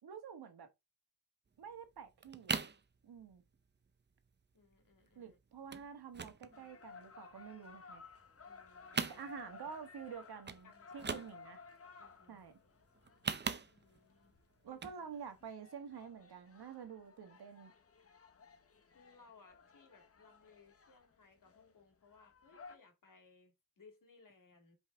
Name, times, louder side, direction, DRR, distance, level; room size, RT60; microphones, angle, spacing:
voice 1, 0.0-0.7 1.6-2.6 3.0-3.4 5.1-8.1 9.1-11.6 12.3-12.6 14.6-17.7, right 7 dB, 80° right, 1.6 m, -49 dB
sound 1, 1.6-1.7 2.0-2.8 3.2-3.5 3.9-4.0 4.2-4.4 4.7-5.2 5.7-5.9 6.1-7.4 7.8-8.6 8.8-9.7 10.0-10.1 10.4-10.6 10.9-11.7 12.9-14.0 14.7-15.0 15.4-15.5, right 5 dB, 30° right, 0.6 m, -40 dB
voice 2, 4.5-5.4 8.4-9.3 10.6-11.1 12.0-12.4 13.7-14.3 14.7-14.9 18.8-24.7, left 4 dB, 55° left, 2.9 m, -64 dB
sound 2, 6.5-22.7, left 4 dB, 35° left, 1.0 m, -58 dB
5.6 x 5.4 x 3.6 m
wide cardioid pair, 160°, 38 cm